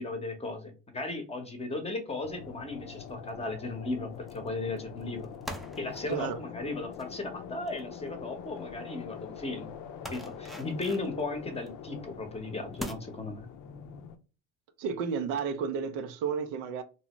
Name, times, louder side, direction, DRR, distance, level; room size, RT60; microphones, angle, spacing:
voice 1, 0.0-5.3 5.8-9.7 10.1-13.5, left 2 dB, 15° left, 0.8 m, -36 dB
sound 1, 2.2-14.2, left 7 dB, 55° left, 0.5 m, -44 dB
sound 2, 2.3-2.5 3.0-3.3 4.3-4.5 4.8-8.6 8.9-9.0 9.4-9.5 10.0-11.8 12.2-12.3 12.8-12.9, equal, ahead, 0.4 m, -44 dB
voice 2, 14.8-16.8, right 6 dB, 75° right, 0.6 m, -32 dB
2.7 x 2.0 x 2.9 m
hypercardioid pair, 75°, 38 cm